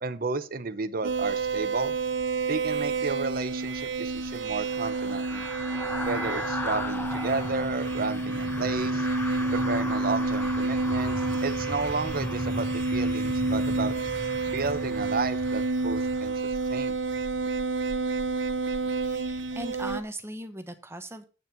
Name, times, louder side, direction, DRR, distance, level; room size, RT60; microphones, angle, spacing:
voice 1, 0.0-2.0 2.5-5.5 6.0-9.1 9.5-11.1 11.4-13.9 14.5-16.3 16.7-17.0, right 3 dB, 55° right, 12 dB, 0.9 m, -32 dB
sound 1, 1.0-20.0, right 3 dB, 80° right, 0.8 m, -29 dB
sound 2, 3.5-16.8 17.2-17.4, left 1 dB, 10° left, 1.3 m, -37 dB
voice 2, 19.0-21.2, right 1 dB, 15° right, 8 dB, 1.2 m, -39 dB
8.9 x 6.5 x 5.8 m, 0.34 s
head